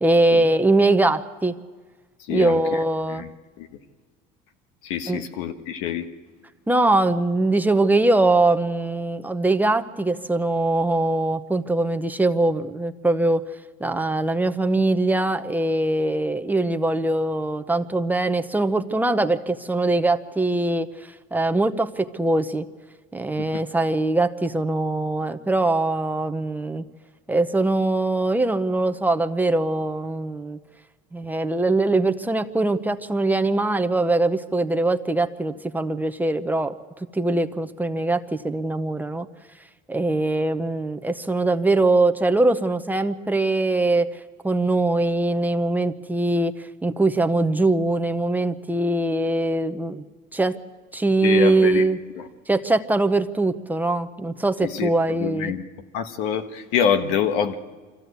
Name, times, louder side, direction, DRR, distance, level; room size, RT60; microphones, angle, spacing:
voice 1, 0.0-1.5 2.3-3.2 5.1-5.2 6.7-13.4 13.8-22.7 23.1-26.8 27.3-30.6 31.1-36.8 37.1-39.3 39.9-50.1 50.3-50.6 50.9-52.0 52.5-55.5, right 2 dB, 10° right, 7 dB, 0.7 m, -22 dB
voice 2, 2.3-2.8 3.1-3.3 3.6-3.7 4.8-6.0 51.2-51.8 54.6-54.9 55.2-55.6 55.9-57.6, left 8 dB, 80° left, 8 dB, 1.5 m, -25 dB
24.5 x 15.0 x 8.2 m, 1.4 s
supercardioid pair, 120°, 20 cm